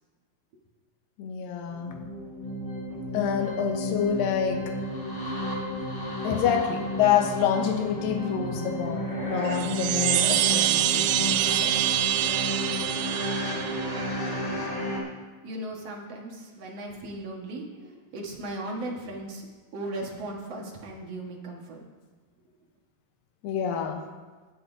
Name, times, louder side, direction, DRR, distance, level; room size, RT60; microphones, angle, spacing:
voice 1, 1.2-2.1 3.1-4.9 6.2-11.9 23.4-24.1, left 8 dB, 75° left, 4 dB, 2.7 m, -27 dB
sound 1, 1.7-15.0, equal, 25° left, 1.9 m, -32 dB
Chime, 9.5-14.2, right 14 dB, 80° right, 2.1 m, -26 dB
voice 2, 15.4-19.5 19.7-21.8, right 1 dB, 50° right, -1 dB, 2.2 m, -37 dB
18.5 x 9.5 x 2.7 m, 1.3 s
omnidirectional pair, 4.2 m